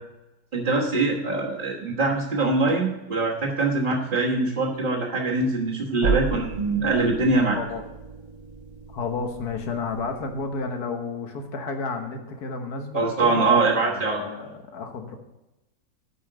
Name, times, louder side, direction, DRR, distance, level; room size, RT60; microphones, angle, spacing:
voice 1, 0.5-7.6 12.9-14.2, right 3 dB, 35° right, -6 dB, 1.5 m, -23 dB
sound 1, 6.0-10.7, right 6 dB, 70° right, 1.3 m, -33 dB
voice 2, 7.5-7.8 8.9-15.2, left 4 dB, 70° left, 5 dB, 1.7 m, -32 dB
8.7 x 5.4 x 7.7 m, 0.99 s
omnidirectional pair, 1.7 m